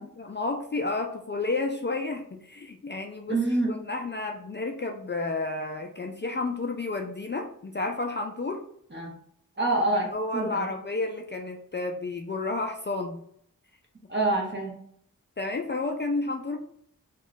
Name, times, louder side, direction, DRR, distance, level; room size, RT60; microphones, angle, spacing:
voice 1, 0.2-3.4 3.7-8.7 10.0-13.2 15.4-16.6, left 3 dB, 35° left, 3 dB, 0.4 m, -31 dB
voice 2, 3.3-3.7 8.9-9.1 9.6-10.7 14.1-14.7, right 2 dB, 35° right, -1 dB, 1.1 m, -26 dB
3.0 x 2.3 x 3.9 m, 0.65 s
wide cardioid pair, 55°, 33 cm